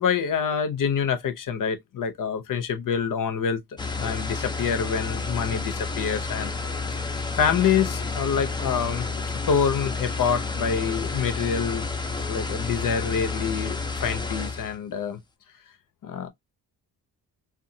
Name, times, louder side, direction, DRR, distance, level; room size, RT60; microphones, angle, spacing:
voice 1, 0.0-3.6 4.0-9.1 9.5-11.9 12.3-15.2 16.0-16.3, left 7 dB, 55° left, 0.7 m, -26 dB
sound 1, 3.8-14.8, left 3 dB, 10° left, 0.6 m, -30 dB
2.6 x 2.4 x 2.6 m
cardioid pair, 70°, 40 cm